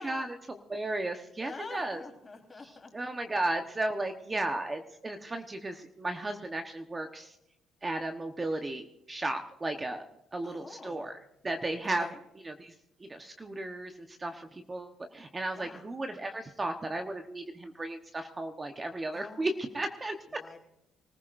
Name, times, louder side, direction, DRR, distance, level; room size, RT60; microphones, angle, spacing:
voice 1, 0.0-2.0 2.9-7.4 7.8-10.0 10.3-11.2 11.4-12.1 12.4-12.7 13.0-20.2, right 2 dB, 20° right, 5 dB, 1.1 m, -35 dB
voice 2, 1.4-2.9 10.4-11.1 11.9-12.2 15.5-15.8 19.1-19.5 20.3-20.6, left 3 dB, 25° left, 1 dB, 4.0 m, -46 dB
25.5 x 15.0 x 2.6 m, 0.84 s
cardioid pair, 105°, 0 cm